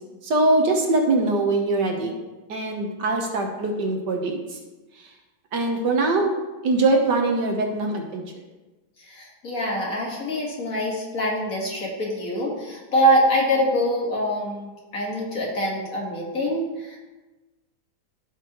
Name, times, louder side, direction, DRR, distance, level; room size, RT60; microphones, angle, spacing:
voice 1, 0.2-2.1 2.5-4.6 5.0-5.1 5.5-6.4 6.6-8.2, right 2 dB, 65° right, 2 dB, 1.6 m, -22 dB
voice 2, 9.1-17.0, equal, 45° left, -3 dB, 2.1 m, -24 dB
14.5 x 5.6 x 3.0 m, 1.1 s
omnidirectional pair, 2.1 m